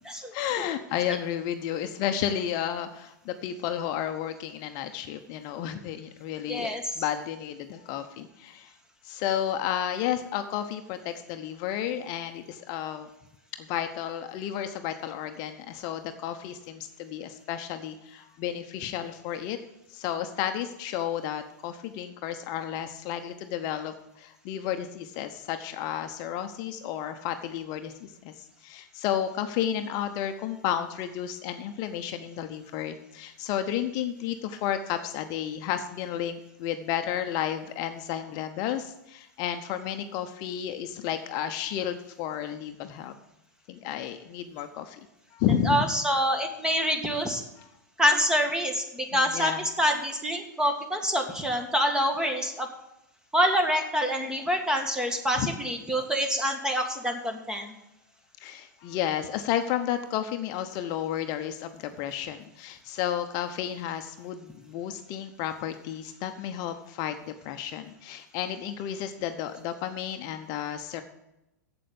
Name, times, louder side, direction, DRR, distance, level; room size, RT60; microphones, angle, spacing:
voice 1, 0.3-8.7 9.0-13.1 13.6-19.6 19.9-43.1 43.7-45.0 45.3-45.9 47.6-47.7 49.1-49.6 55.3-55.5 58.4-71.0, left 10 dB, 45° left, 7 dB, 0.9 m, -32 dB
voice 2, 6.5-6.8 45.6-47.4 48.0-52.7 53.3-57.7, equal, 5° right, 5 dB, 1.7 m, -26 dB
8.0 x 7.6 x 8.5 m, 0.89 s
hypercardioid pair, 105°, 10 cm